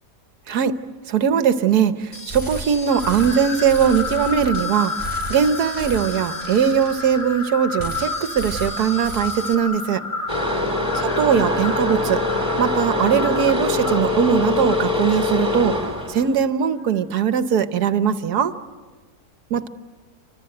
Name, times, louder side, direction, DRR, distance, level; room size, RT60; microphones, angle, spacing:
voice 1, 1.1-4.9 5.3-10.0 10.9-12.2 12.6-15.7 16.1-18.5 19.5-19.7, right 8 dB, 80° right, 11 dB, 1.5 m, -20 dB
sound 1, 2.1-7.5 7.8-9.6, equal, 15° left, 2.4 m, -34 dB
sound 2, 2.9-16.3, left 3 dB, 40° left, 3.6 m, -31 dB
sound 3, 10.3-16.4, left 3 dB, 20° right, 3.1 m, -23 dB
29.0 x 25.0 x 7.8 m, 1.4 s
omnidirectional pair, 1.7 m